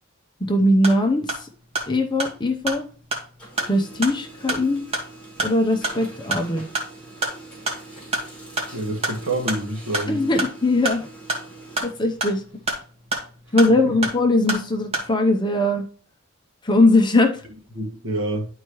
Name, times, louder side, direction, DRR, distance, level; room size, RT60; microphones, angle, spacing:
voice 1, 0.4-1.5 1.9-2.8 3.6-4.8 5.4-6.7 10.1-11.1 11.8-12.4 13.5-15.8 16.6-17.4, left 2 dB, 20° left, 0.8 m, -20 dB
sound 1, 0.6-15.1, right 2 dB, 30° right, 1.8 m, -31 dB
Printer, 1.7-3.0 3.3-12.8, right 2 dB, 5° left, 4.4 m, -44 dB
voice 2, 8.7-10.2 17.7-18.5, right 1 dB, 65° right, 1.8 m, -27 dB
11.0 x 4.6 x 3.1 m
head